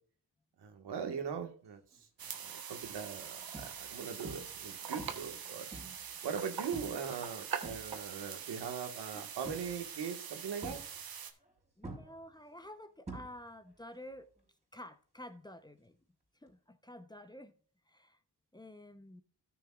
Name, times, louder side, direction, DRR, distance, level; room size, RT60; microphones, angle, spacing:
voice 1, 0.6-1.8 2.4-5.7 6.2-10.8, right 7 dB, 85° right, 6 dB, 1.7 m, -40 dB
sound 1, 1.9-2.2 2.8-2.9 3.5-4.0 4.2-4.7 5.0-6.1 6.7-7.1 7.4-8.3 9.4-10.0 10.6-11.5 11.8-13.7 14.0-14.4 16.5-16.6, right 2 dB, 15° right, 4.0 m, -48 dB
sound 2, 2.2-11.3, right 7 dB, 60° right, 1.2 m, -43 dB
voice 2, 11.8-14.3 14.7-16.0 16.4-17.5 17.9-18.2 18.5-19.2, left 1 dB, 10° left, 9 dB, 0.8 m, -50 dB
13.5 x 6.8 x 2.4 m, 0.43 s
cardioid pair, 105°, 40 cm